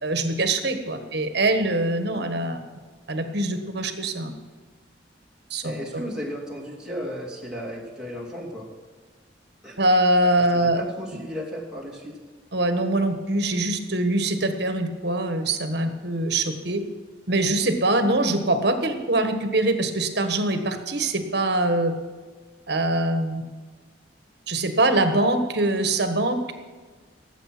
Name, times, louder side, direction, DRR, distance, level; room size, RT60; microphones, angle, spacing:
voice 1, 0.0-2.6 3.1-4.3 5.5-5.7 9.8-10.8 12.5-16.8 17.3-21.9 22.7-23.4 24.5-26.5, right 2 dB, 60° right, 7 dB, 1.5 m, -23 dB
voice 2, 5.6-8.7 9.6-9.8 10.5-12.2, equal, 5° right, -4 dB, 2.9 m, -34 dB
18.0 x 8.2 x 6.1 m, 1.4 s
head